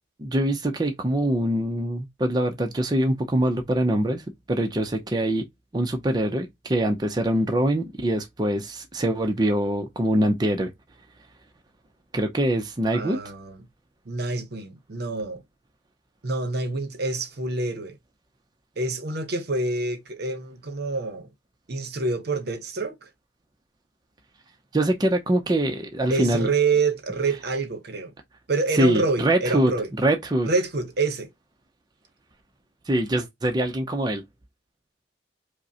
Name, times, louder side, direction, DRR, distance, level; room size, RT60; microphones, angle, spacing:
voice 1, 0.2-5.4 5.7-10.7 12.1-13.2 24.7-26.5 28.7-30.5 32.9-34.2, right 1 dB, 20° right, 0.5 m, -24 dB
voice 2, 12.9-13.6 14.1-15.4 16.2-17.9 18.8-21.3 21.7-23.1 26.1-28.1 28.5-29.9 30.4-31.3, right 3 dB, 60° right, 0.8 m, -27 dB
5.0 x 2.1 x 2.8 m
head